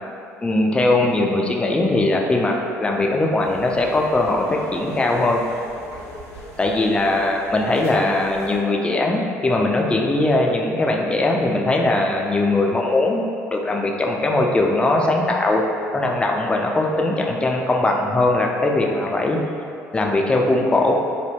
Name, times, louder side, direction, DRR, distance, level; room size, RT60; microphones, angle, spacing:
voice 1, 0.4-5.5 6.6-15.6 15.9-19.4 19.9-20.9, left 2 dB, 10° left, 0 dB, 0.3 m, -20 dB
sound 1, 3.4-8.6, right 1 dB, 90° right, 0.7 m, -40 dB
3.4 x 2.1 x 2.9 m, 2.5 s
figure-of-eight pair, 55°, 8 cm